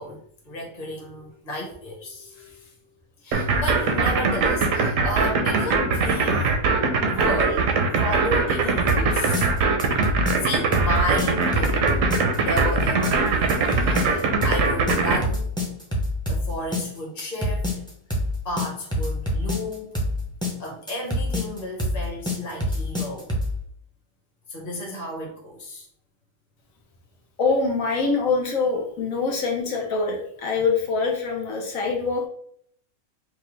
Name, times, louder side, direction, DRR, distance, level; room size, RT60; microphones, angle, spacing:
voice 1, 0.0-2.7 3.2-6.6 7.1-7.7 8.0-9.5 10.4-12.0 12.3-15.5 16.3-17.7 18.4-19.9 20.6-23.3 24.5-25.9, equal, 30° left, -2 dB, 1.2 m, -32 dB
voice 2, 1.0-1.3 2.0-2.9 6.8-6.9 9.9-10.0 27.4-32.3, left 4 dB, 80° left, 0 dB, 1.3 m, -25 dB
sound 1, 3.3-15.2, right 4 dB, 75° right, 1.1 m, -21 dB
sound 2, 8.9-23.6, left 1 dB, 5° left, 0.7 m, -26 dB
5.1 x 2.3 x 3.1 m, 0.64 s
omnidirectional pair, 1.4 m